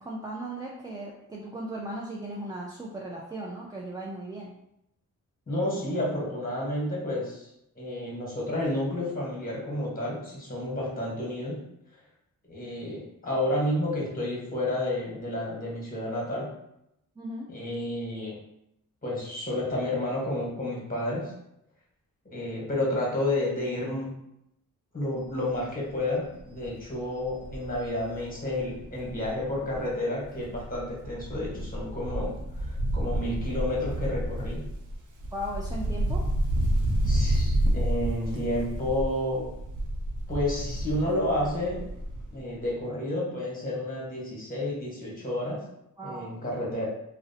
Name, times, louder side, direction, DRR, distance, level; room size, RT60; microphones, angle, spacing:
voice 1, 0.0-4.5 17.2-17.5 35.3-36.2 46.0-46.3, right 1 dB, 10° right, -3 dB, 0.4 m, -37 dB
voice 2, 5.5-7.5 7.8-11.6 12.5-16.5 17.5-18.4 19.0-21.3 22.3-24.1 24.9-34.7 37.0-39.5 40.3-41.9 42.3-45.6 46.0-46.9, left 1 dB, 25° left, -4 dB, 1.2 m, -30 dB
Wind, 25.3-25.6 26.0-26.1 26.4-29.9 30.2-42.4 42.6-42.7, right 1 dB, 65° right, 0.6 m, -30 dB
2.6 x 2.1 x 2.6 m, 0.81 s
cardioid pair, 55°, 33 cm